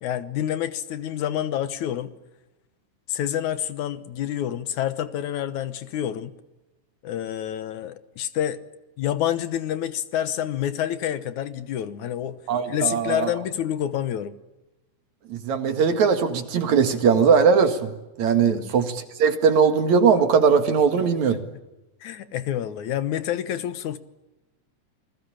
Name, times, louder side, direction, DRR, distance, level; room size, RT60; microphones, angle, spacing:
voice 1, 0.0-2.1 3.1-6.3 7.0-8.6 9.0-12.4 12.7-14.4 18.4-18.7 21.3-21.4 22.0-24.0, left 11 dB, 70° left, 2.4 m, -28 dB
voice 2, 12.5-13.3 15.3-17.9 18.2-21.4, right 6 dB, 65° right, 3.2 m, -20 dB
28.0 x 20.5 x 8.9 m
omnidirectional pair, 3.7 m